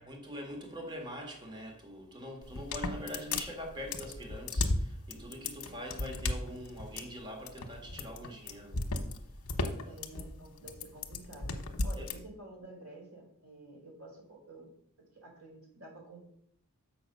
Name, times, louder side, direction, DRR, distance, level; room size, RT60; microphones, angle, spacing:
voice 1, 0.0-8.9 9.3-9.9 11.9-12.1, equal, 20° right, 1.8 m, -44 dB
sound 1, 2.4-12.2, left 2 dB, 65° left, 1.0 m, -35 dB
voice 2, 9.8-11.5 11.8-14.7 15.1-16.3, right 2 dB, 70° right, 3.5 m, -50 dB
7.0 x 5.8 x 6.4 m
head